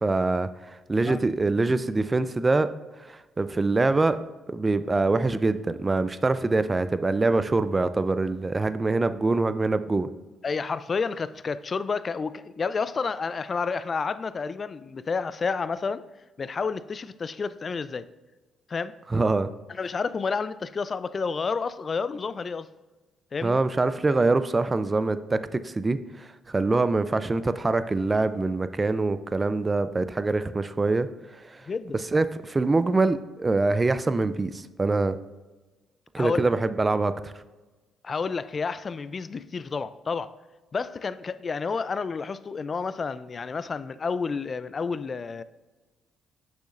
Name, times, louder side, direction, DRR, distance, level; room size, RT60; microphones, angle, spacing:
voice 1, 0.0-2.7 3.0-4.2 4.5-10.1 19.1-19.5 23.4-31.1 31.5-31.7 32.1-35.2 36.1-37.3, right 3 dB, 25° right, 13 dB, 0.4 m, -24 dB
voice 2, 10.4-16.0 16.4-18.1 18.7-19.0 19.7-22.7 23.3-23.6 31.7-32.0 36.2-36.5 38.0-40.3 40.7-45.4, left 5 dB, 40° left, 15 dB, 0.4 m, -30 dB
8.4 x 6.3 x 2.5 m, 1.2 s
supercardioid pair, 65°, 0 cm